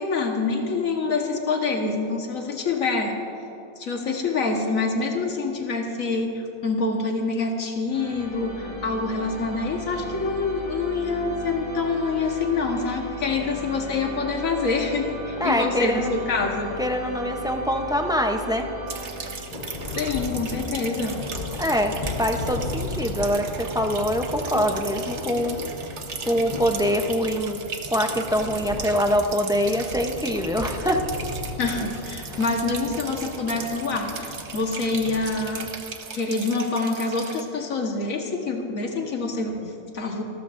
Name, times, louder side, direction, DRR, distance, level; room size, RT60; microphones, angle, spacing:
voice 1, 0.0-3.2 3.8-16.7 20.0-21.2 31.6-35.7 36.1-40.2, left 3 dB, 85° left, 1 dB, 1.8 m, -26 dB
sound 1, 7.9-19.8, equal, 30° right, 2.8 m, -36 dB
voice 2, 15.4-16.1 16.8-18.7 21.6-25.6 26.3-27.6 27.9-31.0, equal, 5° right, 3 dB, 0.5 m, -24 dB
sound 2, 18.9-37.4, right 5 dB, 60° right, 1.2 m, -38 dB
Thunder, 19.5-35.7, left 2 dB, 35° left, 1.2 m, -35 dB
28.0 x 13.5 x 2.6 m, 2.9 s
omnidirectional pair, 1.4 m